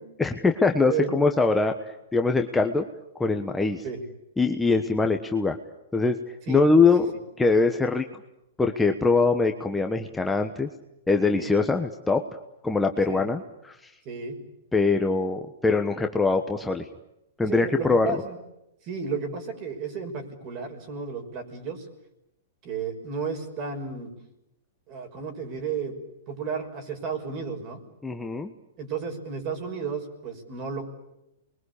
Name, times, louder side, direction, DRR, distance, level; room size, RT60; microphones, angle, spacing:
voice 1, 0.2-2.8 3.2-3.8 4.4-5.6 5.9-6.2 6.5-7.1 7.4-8.0 8.6-10.7 11.1-12.2 12.6-13.9 14.7-16.8 17.4-18.2 28.0-28.5, left 3 dB, 5° left, 4 dB, 1.3 m, -23 dB
voice 2, 0.8-1.1 3.8-4.0 6.5-6.6 11.4-11.5 13.1-13.2 14.0-14.4 17.4-18.4 18.8-21.8 22.6-24.1 24.9-26.0 26.3-27.8 28.8-30.9, right 5 dB, 35° right, 6 dB, 6.0 m, -33 dB
28.5 x 22.5 x 8.5 m, 0.87 s
hypercardioid pair, 145°, 0 cm